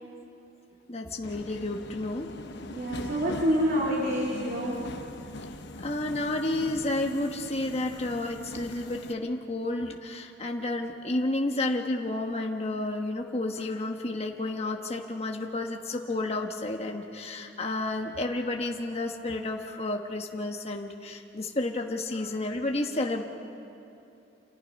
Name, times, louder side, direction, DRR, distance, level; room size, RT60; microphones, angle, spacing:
voice 1, 0.9-2.3 5.8-23.2, left 2 dB, 35° left, 2 dB, 1.2 m, -31 dB
Subway metro underground, 1.2-9.1, left 2 dB, 65° left, 1.1 m, -42 dB
voice 2, 2.7-4.8, equal, 50° right, -4 dB, 3.2 m, -27 dB
29.5 x 28.0 x 5.3 m, 2.8 s
head